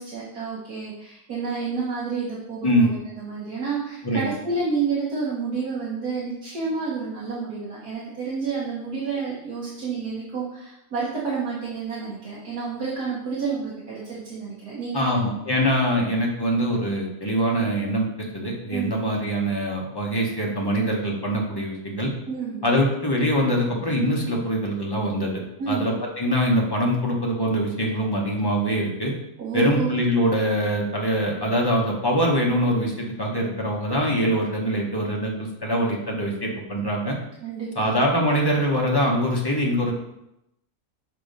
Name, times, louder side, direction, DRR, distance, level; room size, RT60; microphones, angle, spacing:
voice 1, 0.0-15.3 18.7-19.0 22.3-22.7 25.6-25.9 29.4-29.9 37.4-38.0, right 5 dB, 80° right, -7 dB, 1.7 m, -30 dB
voice 2, 14.9-22.1 22.6-25.4 25.7-29.1 29.5-37.1 37.7-39.9, equal, 20° left, -2 dB, 0.8 m, -23 dB
6.8 x 2.9 x 5.2 m, 0.84 s
omnidirectional pair, 1.6 m